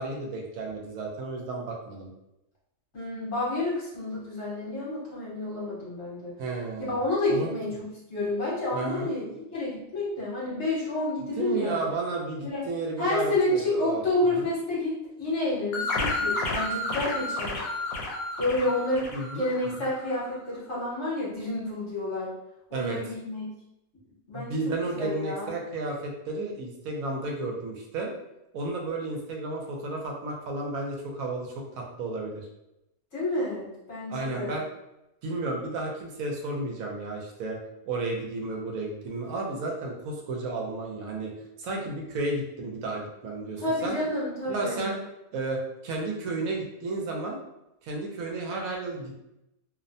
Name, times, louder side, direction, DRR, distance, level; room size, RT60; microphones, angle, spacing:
voice 1, 0.0-2.1 6.4-7.0 7.3-7.5 8.7-9.1 11.4-14.5 19.1-19.4 22.7-23.0 24.3-28.1 28.5-32.5 34.1-34.7 35.2-37.6 37.9-41.3 41.6-44.0 44.5-45.0 45.3-47.4 47.8-49.1, right 2 dB, 75° right, 0 dB, 1.0 m, -32 dB
voice 2, 2.9-6.3 6.9-9.2 9.5-11.9 12.4-12.6 13.0-14.9 15.2-17.6 18.4-22.3 22.7-23.5 24.3-24.6 24.9-25.5 33.1-34.6 43.6-44.9, left 2 dB, 55° left, -7 dB, 1.2 m, -29 dB
sound 1, 15.7-20.1, left 2 dB, 90° left, 1.1 m, -31 dB
2.7 x 2.1 x 2.5 m, 0.89 s
omnidirectional pair, 1.5 m